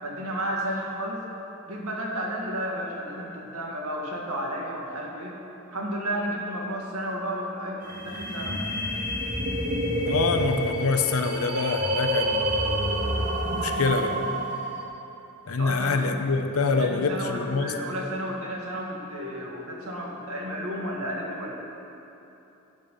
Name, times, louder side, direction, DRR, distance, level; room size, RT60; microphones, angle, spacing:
voice 1, 0.0-1.2 1.7-5.4 5.7-8.6 15.6-16.2 16.6-21.5, equal, 85° right, -2 dB, 1.9 m, -32 dB
sound 1, 7.8-14.8, equal, 40° right, 1.5 m, -28 dB
voice 2, 10.1-13.2 13.5-14.2 15.5-17.8, left 4 dB, 75° left, 6 dB, 0.8 m, -26 dB
16.0 x 5.5 x 5.6 m, 3.0 s
head